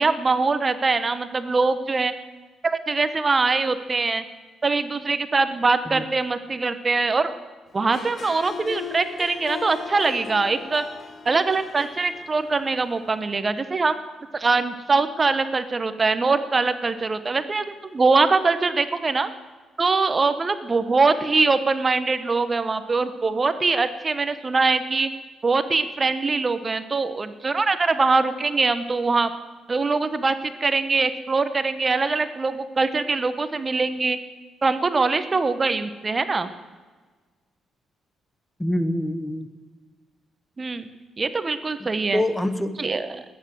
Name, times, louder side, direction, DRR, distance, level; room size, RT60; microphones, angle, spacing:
voice 1, 0.0-2.1 2.6-4.2 4.6-7.3 7.7-10.8 11.2-14.0 14.3-19.3 19.8-25.1 25.4-29.3 29.7-34.2 34.6-36.5 40.6-40.9 41.2-42.2 42.8-43.2, right 4 dB, 30° right, 11 dB, 1.0 m, -23 dB
Harp, 7.8-13.2, left 6 dB, 45° left, 1.3 m, -38 dB
voice 2, 38.6-39.5 41.8-42.9, left 1 dB, 5° left, 12 dB, 1.1 m, -26 dB
19.5 x 9.4 x 7.7 m, 1.4 s
cardioid pair, 95°, 0 cm